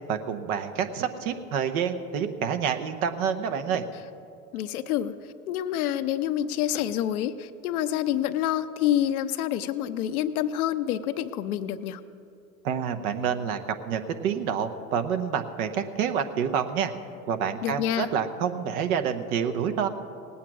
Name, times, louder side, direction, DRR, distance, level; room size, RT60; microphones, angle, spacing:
voice 1, 0.1-3.8 12.6-13.6 13.8-16.9 17.3-19.9, right 7 dB, 70° right, 8 dB, 1.1 m, -28 dB
voice 2, 4.5-5.1 5.5-12.0 17.6-18.1, left 11 dB, 75° left, 10 dB, 0.7 m, -27 dB
18.0 x 8.6 x 6.1 m, 2.6 s
hypercardioid pair, 85°, 44 cm